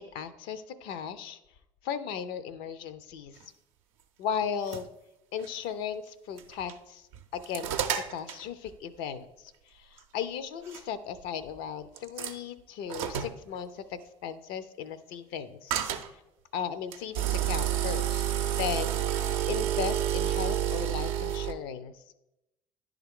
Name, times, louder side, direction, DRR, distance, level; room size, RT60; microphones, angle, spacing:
voice 1, 0.0-1.4 1.8-3.4 4.2-4.9 5.3-7.1 7.3-9.3 9.7-15.8 16.5-18.2 18.6-21.9, left 8 dB, 65° left, 13 dB, 0.5 m, -36 dB
sound 1, 4.4-4.8 5.4-5.5 6.4-6.7 7.1-8.4 10.0-10.1 10.7-10.8 12.0-12.4 12.9-13.4 15.7-16.1 16.9-21.5, right 11 dB, 75° right, 0.5 m, -29 dB
10.5 x 3.5 x 3.6 m, 0.92 s
hypercardioid pair, 60°, 17 cm